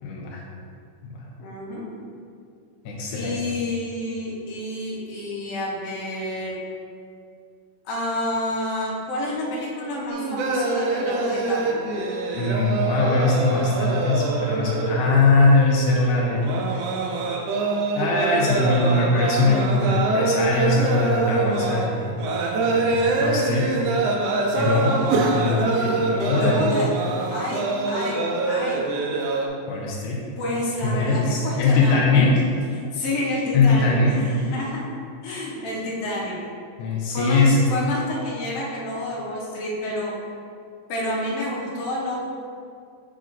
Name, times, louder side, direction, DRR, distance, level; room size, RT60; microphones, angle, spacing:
voice 1, 0.0-0.4 1.0-1.2 2.9-3.4 12.3-16.8 17.9-22.3 22.7-23.7 24.6-25.0 25.3-26.8 29.7-30.2 30.8-32.4 33.5-34.1 36.8-37.6, left 3 dB, 80° left, -3 dB, 2.2 m, -21 dB
voice 2, 1.4-1.9 3.1-6.6 7.9-11.8 25.7-26.9 27.3-28.9 30.4-32.1 32.8-34.9 35.2-36.4 37.1-40.1 40.9-42.2, left 1 dB, 60° left, -5 dB, 2.0 m, -29 dB
sound 1, 10.1-29.5, right 3 dB, 80° right, 1.4 m, -25 dB
6.2 x 4.9 x 3.9 m, 2.3 s
omnidirectional pair, 3.5 m